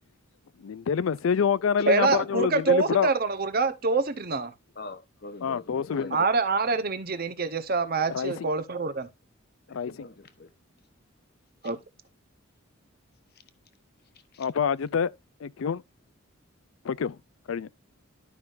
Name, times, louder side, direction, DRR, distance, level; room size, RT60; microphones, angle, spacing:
voice 1, 0.6-3.1 5.4-6.2 8.1-8.5 9.7-9.9 14.4-15.1 15.4-15.8 16.8-17.2 17.5-17.7, left 7 dB, 70° left, 0.4 m, -26 dB
voice 2, 1.9-4.5 6.1-9.1 11.6-11.8, right 4 dB, 45° right, 0.9 m, -25 dB
voice 3, 4.7-6.3 9.7-10.5 11.6-11.7 14.3-14.5, left 2 dB, 50° left, 1.0 m, -43 dB
12.0 x 5.5 x 2.5 m
head